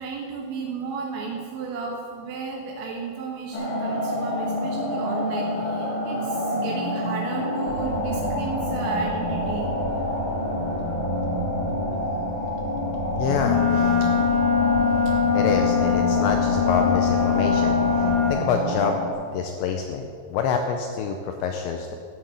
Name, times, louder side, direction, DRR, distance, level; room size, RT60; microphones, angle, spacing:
voice 1, 0.0-9.7, right 4 dB, 75° right, 0 dB, 3.1 m, -33 dB
sound 1, 3.5-19.1, left 1 dB, 50° left, 2.3 m, -28 dB
sound 2, 7.7-18.3, equal, 30° right, 2.3 m, -31 dB
voice 2, 13.1-14.1 15.3-19.0 19.3-21.9, left 6 dB, 85° left, 4 dB, 2.6 m, -27 dB
Wind instrument woodwind instrument, 13.4-18.4, left 7 dB, 70° left, 3.5 m, -22 dB
13.0 x 6.6 x 7.6 m, 2.4 s
omnidirectional pair, 5.6 m